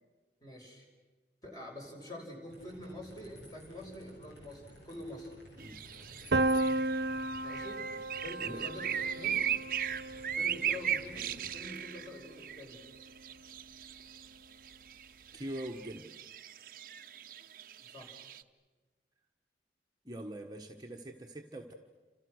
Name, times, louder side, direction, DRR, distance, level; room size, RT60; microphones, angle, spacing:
voice 1, 0.4-0.9 1.4-5.3 7.4-7.9 8.2-9.5 10.3-12.8 17.8-18.2, left 1 dB, 20° left, 1 dB, 5.7 m, -46 dB
sound 1, 2.5-11.6, left 1 dB, 80° left, 7.8 m, -55 dB
sound 2, 5.6-18.4, right 9 dB, 50° right, 0.9 m, -38 dB
Piano, 6.3-12.1, right 2 dB, 75° right, 1.0 m, -34 dB
voice 2, 15.3-16.1 20.0-21.7, right 1 dB, 20° right, 2 dB, 1.3 m, -43 dB
29.5 x 27.0 x 6.5 m, 1.3 s
head